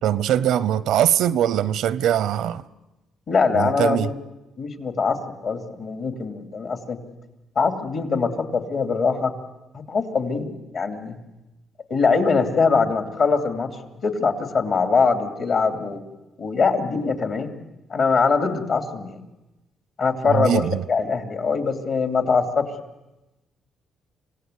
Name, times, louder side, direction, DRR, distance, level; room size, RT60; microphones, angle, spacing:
voice 1, 0.0-2.6 3.5-4.1 20.2-20.8, right 10 dB, 85° right, 0.7 m, -21 dB
voice 2, 3.3-4.2 4.6-7.0 7.5-9.3 9.7-11.2 11.9-13.7 14.0-16.0 16.4-17.6 17.9-19.2 20.0-20.6 20.9-22.7, left 5 dB, 60° left, 2.7 m, -22 dB
26.5 x 17.0 x 8.2 m
cardioid pair, 90°, 0 cm